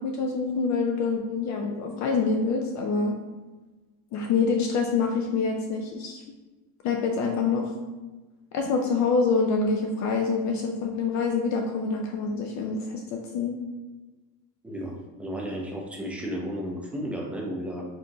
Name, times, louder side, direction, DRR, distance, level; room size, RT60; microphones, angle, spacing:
voice 1, 0.0-3.2 4.1-6.2 6.8-7.7 8.5-13.5, left 4 dB, 45° left, 2 dB, 0.5 m, -26 dB
voice 2, 14.6-17.9, equal, 5° right, -2 dB, 0.7 m, -33 dB
4.8 x 2.4 x 3.9 m, 1.2 s
cardioid pair, 135°, 39 cm